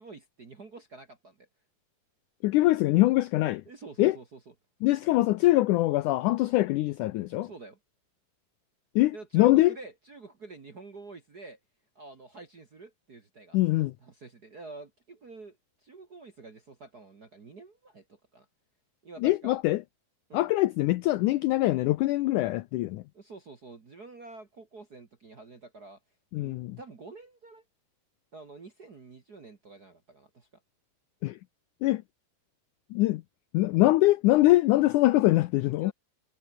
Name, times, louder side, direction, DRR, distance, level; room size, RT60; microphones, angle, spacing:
voice 1, 0.0-1.5 3.6-4.5 7.3-7.8 9.1-11.6 11.9-13.6 14.0-18.5 19.0-19.6 20.3-20.5 23.1-26.0 26.4-27.6 28.3-30.5 35.8-35.9, right 3 dB, 40° right, 1.4 m, -48 dB
voice 2, 2.4-3.6 4.0-4.2 4.8-7.5 9.0-9.7 13.5-13.9 19.2-19.8 20.3-23.0 26.3-26.8 31.2-31.4 31.8-32.0 32.9-33.2 33.5-35.9, left 17 dB, 85° left, 1.8 m, -23 dB
omnidirectional pair, 4.3 m